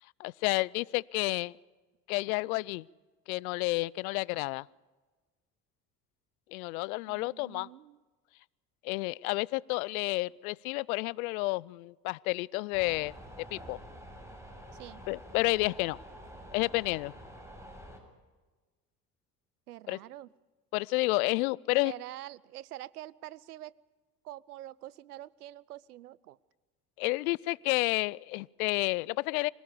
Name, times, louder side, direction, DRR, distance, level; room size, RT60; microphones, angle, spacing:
voice 1, 0.2-1.5 2.1-2.9 3.3-4.7 6.5-7.7 8.8-13.8 15.1-16.0 16.5-17.1 19.9-20.0 20.7-21.9 27.0-29.5, left 23 dB, 70° left, 25 dB, 0.6 m, -30 dB
voice 2, 7.1-8.0 14.7-15.0 19.7-20.3 21.8-23.7 24.2-26.4, right 14 dB, 85° right, 22 dB, 0.6 m, -46 dB
sound 1, 12.7-18.0, equal, 5° right, 7.2 m, -48 dB
25.5 x 18.0 x 7.0 m, 1.3 s
figure-of-eight pair, 60°, 45 cm